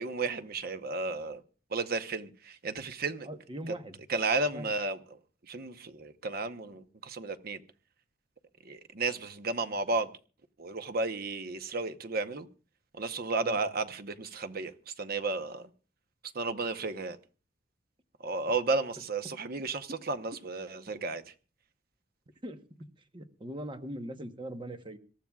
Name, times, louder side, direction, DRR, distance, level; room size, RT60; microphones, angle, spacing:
voice 1, 0.0-1.4 1.7-3.3 4.1-5.0 5.5-7.6 8.6-10.1 10.6-12.5 13.0-14.7 15.0-15.7 16.3-17.2 18.2-21.2, right 3 dB, 55° right, 0.9 m, -33 dB
voice 2, 3.2-4.0 4.4-4.7 13.4-13.6 22.4-22.6 23.1-25.0, right 1 dB, 25° right, 1.1 m, -41 dB
26.0 x 13.5 x 2.4 m
head